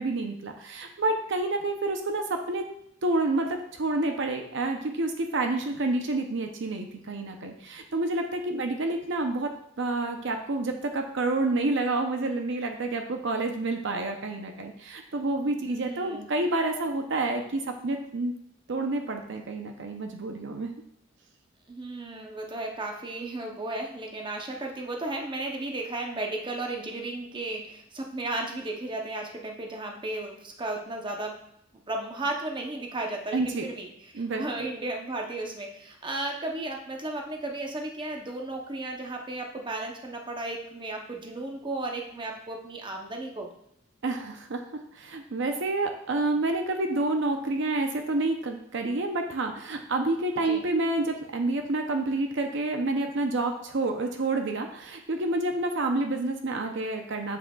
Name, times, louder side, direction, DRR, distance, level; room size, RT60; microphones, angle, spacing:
voice 1, 0.0-2.7 3.0-9.5 9.8-18.3 18.7-20.7 33.3-33.7 34.1-34.5 44.0-57.4, right 2 dB, 65° right, 4 dB, 0.7 m, -29 dB
voice 2, 15.6-16.3 21.7-31.3 31.9-33.9 34.1-43.5 50.5-50.6, right 2 dB, 25° right, 2 dB, 0.8 m, -34 dB
7.5 x 6.4 x 2.3 m, 0.74 s
head